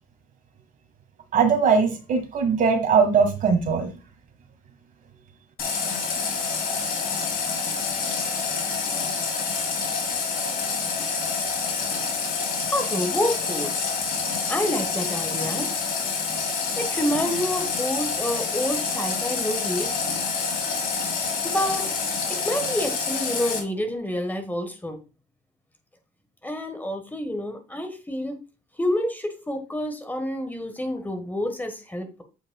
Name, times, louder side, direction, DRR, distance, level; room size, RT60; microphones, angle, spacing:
voice 1, 1.3-3.9, right 5 dB, 50° right, 6 dB, 1.5 m, -20 dB
Water tap faucet, 5.6-23.6, left 5 dB, 60° left, 2.4 m, -27 dB
voice 2, 12.7-13.7 14.5-15.7 16.8-19.9 21.4-21.9 22.3-25.0 26.4-28.4 28.8-32.2, left 1 dB, 10° left, 6 dB, 1.2 m, -28 dB
8.3 x 5.1 x 2.2 m, 0.31 s
cardioid pair, 110°, 17 cm